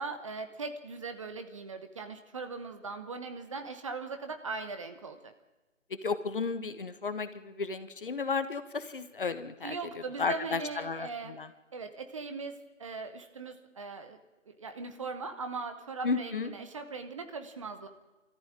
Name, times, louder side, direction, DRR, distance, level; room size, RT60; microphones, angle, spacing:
voice 1, 0.0-5.3 9.6-11.3 11.7-14.2 14.4-17.9, right 4 dB, 25° right, 8 dB, 1.1 m, -39 dB
voice 2, 6.0-9.7 10.2-11.5 16.0-16.5, left 4 dB, 45° left, 11 dB, 1.4 m, -33 dB
23.0 x 14.0 x 8.8 m, 1.2 s
figure-of-eight pair, 150°, 38 cm